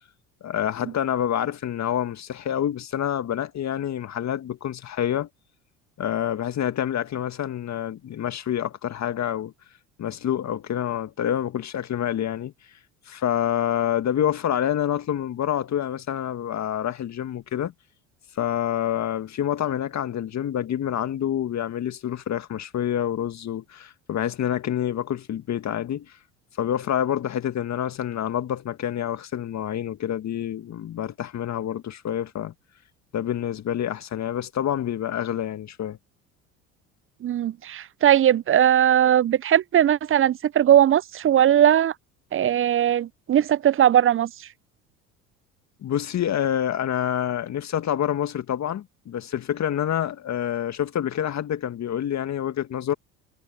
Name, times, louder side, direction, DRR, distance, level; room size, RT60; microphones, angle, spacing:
voice 1, 0.4-5.3 6.0-9.5 10.0-12.5 13.1-17.7 18.3-26.2 26.6-32.5 33.1-36.0 45.8-52.9, left 10 dB, 40° left, 1.8 m, -27 dB
voice 2, 37.2-41.9 42.3-44.3, right 10 dB, 30° right, 0.7 m, -19 dB
hypercardioid pair, 65°, 41 cm